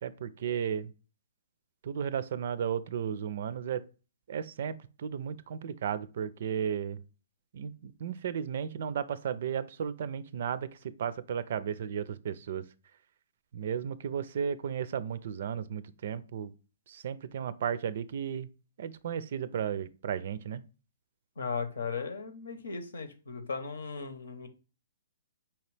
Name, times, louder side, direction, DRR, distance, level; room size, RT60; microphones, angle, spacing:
voice 1, 0.0-0.9 1.8-3.8 4.3-7.0 7.5-10.7 11.0-12.6 13.5-16.5 16.9-18.5 18.8-20.6, right 8 dB, 60° right, 0.4 m, -34 dB
voice 2, 21.4-24.5, left 5 dB, 85° left, 0.9 m, -37 dB
5.0 x 2.9 x 3.2 m
hypercardioid pair, 145°, 0 cm